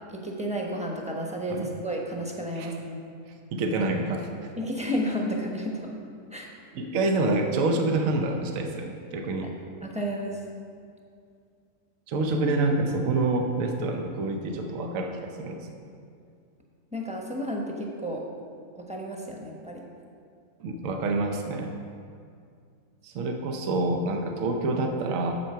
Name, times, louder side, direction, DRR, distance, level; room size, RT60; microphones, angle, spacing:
voice 1, 0.1-3.0 4.6-5.9 6.3-6.5 9.8-10.4 16.9-18.2 18.8-19.8, equal, 5° right, -1 dB, 1.0 m, -32 dB
voice 2, 3.5-4.3 6.7-9.5 12.1-15.6 20.6-21.7 23.0-25.3, right 2 dB, 65° right, 4 dB, 1.2 m, -27 dB
8.2 x 7.5 x 5.7 m, 2.3 s
omnidirectional pair, 1.5 m